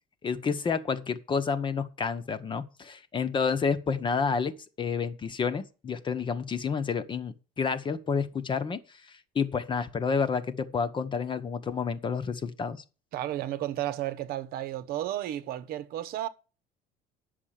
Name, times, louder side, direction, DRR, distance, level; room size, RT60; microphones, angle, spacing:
voice 1, 0.2-12.8, left 5 dB, 30° left, 1.1 m, -30 dB
voice 2, 13.1-16.3, right 13 dB, 60° right, 1.0 m, -33 dB
9.8 x 6.6 x 7.5 m
cardioid pair, 130°, 17 cm